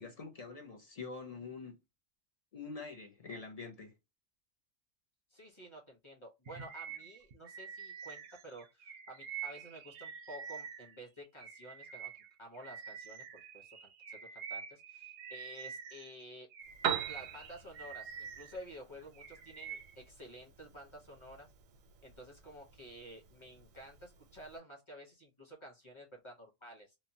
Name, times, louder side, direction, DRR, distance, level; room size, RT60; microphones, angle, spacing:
voice 1, 0.0-1.8 2.5-3.9, left 4 dB, 50° left, 0.4 m, -45 dB
voice 2, 5.3-16.5 17.1-21.5 22.0-27.0, equal, 25° left, 0.9 m, -52 dB
Bird vocalization bird call bird song, 6.5-11.0 11.4-16.1 16.5-18.6 19.0-20.0, right 7 dB, 60° right, 0.7 m, -47 dB
Piano, 16.6-24.6, right 8 dB, 85° right, 1.0 m, -44 dB
3.0 x 2.1 x 2.7 m
omnidirectional pair, 1.3 m